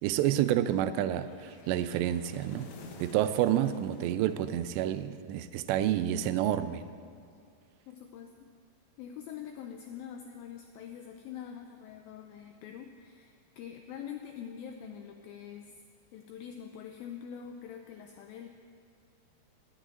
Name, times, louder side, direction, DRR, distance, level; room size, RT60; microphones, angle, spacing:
voice 1, 0.0-2.7 3.0-6.9, right 11 dB, 90° right, 12 dB, 2.8 m, -29 dB
sound 1, 1.1-5.3, left 3 dB, 70° left, 2.6 m, -52 dB
voice 2, 7.9-8.3 9.0-15.7 16.1-18.5, left 8 dB, 85° left, 5 dB, 2.1 m, -44 dB
11.5 x 7.3 x 8.9 m, 2.4 s
omnidirectional pair, 4.9 m